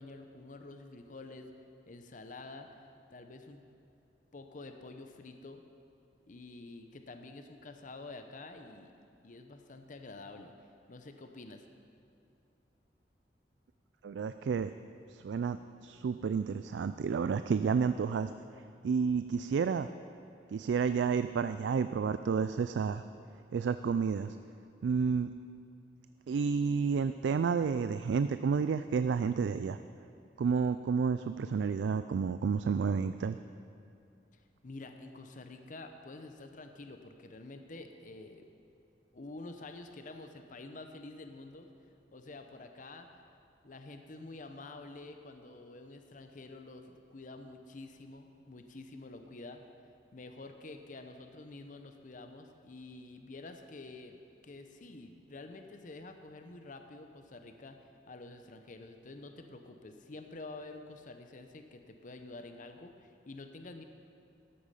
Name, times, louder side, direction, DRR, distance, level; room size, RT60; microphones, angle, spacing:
voice 1, 0.0-1.5 1.9-2.7 3.1-3.6 4.3-5.6 6.3-8.9 9.2-10.5 10.9-11.7 34.3-38.4 39.1-41.7 42.1-43.2 43.6-49.6 50.1-54.2 54.4-57.8 58.1-63.8, left 2 dB, 45° left, 6 dB, 0.7 m, -48 dB
voice 2, 14.0-14.7 15.1-18.3 18.8-19.9 20.5-23.0 23.5-24.4 24.8-25.3 26.3-29.8 30.4-33.4, right 5 dB, 80° right, 11 dB, 0.3 m, -30 dB
13.5 x 8.6 x 5.6 m, 2.5 s
head